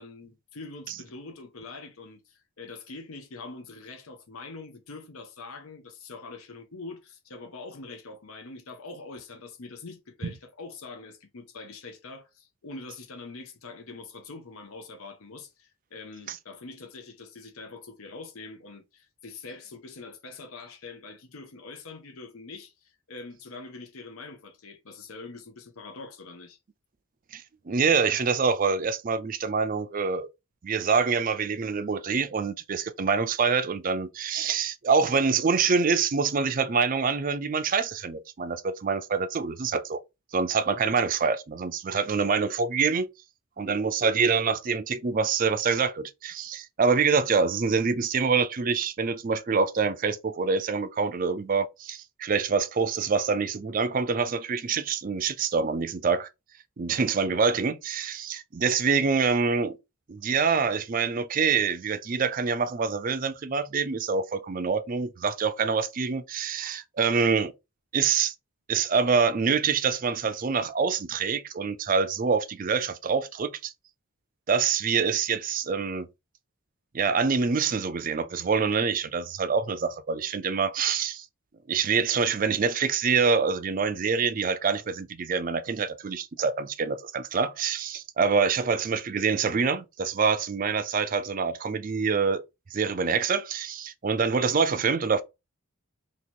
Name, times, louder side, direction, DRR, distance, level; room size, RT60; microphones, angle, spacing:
voice 1, 0.0-26.6, left 3 dB, 75° left, 0.7 m, -44 dB
voice 2, 27.3-30.3 30.6-40.0 40.3-43.1 43.6-56.3 56.8-59.8 60.1-67.5 67.9-68.3 68.7-73.7 74.5-76.1 76.9-81.3 81.7-92.4 92.7-95.2, right 5 dB, 40° right, 0.4 m, -26 dB
2.9 x 2.9 x 4.3 m
head